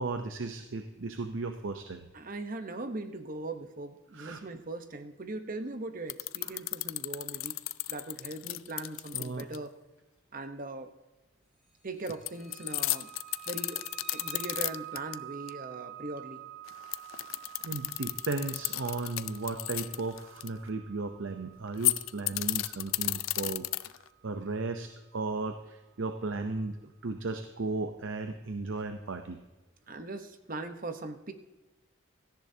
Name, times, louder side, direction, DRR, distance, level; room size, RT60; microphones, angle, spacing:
voice 1, 0.0-2.0 4.1-4.4 9.1-9.4 17.6-23.7 24.2-26.8 27.0-29.4, right 3 dB, 70° right, 7 dB, 0.7 m, -35 dB
voice 2, 2.1-7.6 7.9-9.7 10.3-10.9 11.8-13.1 13.5-13.8 14.1-16.4 29.9-31.3, right 2 dB, 45° right, 8 dB, 1.0 m, -40 dB
sound 1, 6.1-9.6 12.1-15.1 15.5-15.6 16.7-20.5 21.7-24.1, left 18 dB, 80° left, 0.4 m, -33 dB
sound 2, 12.2-24.7, right 12 dB, 5° right, 1.7 m, -49 dB
17.0 x 14.0 x 2.8 m, 1.1 s
head